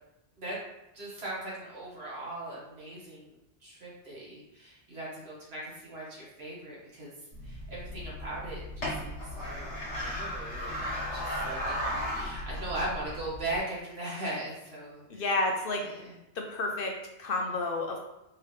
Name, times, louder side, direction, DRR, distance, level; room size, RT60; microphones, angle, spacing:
voice 1, 0.9-3.3 3.6-7.1 7.4-15.2 15.8-16.1, right 1 dB, 65° right, -6 dB, 1.7 m, -39 dB
sound 1, 7.3-13.6, equal, 80° left, 1.6 m, -36 dB
voice 2, 15.1-15.8 16.4-16.9 17.2-18.0, left 2 dB, 60° left, 2 dB, 0.7 m, -30 dB
4.8 x 2.9 x 3.2 m, 0.94 s
omnidirectional pair, 1.2 m